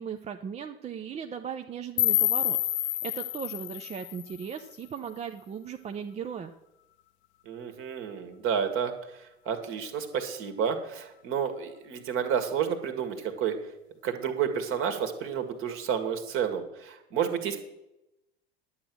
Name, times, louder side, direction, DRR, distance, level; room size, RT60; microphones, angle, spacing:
voice 1, 0.0-6.5, right 7 dB, 20° right, 6 dB, 0.6 m, -37 dB
sound 1, 2.0-5.0, left 15 dB, 40° left, 0.6 m, -28 dB
voice 2, 7.5-13.6 14.0-17.6, right 7 dB, 40° right, 7 dB, 1.7 m, -30 dB
11.0 x 7.8 x 6.2 m, 0.90 s
figure-of-eight pair, 75°, 31 cm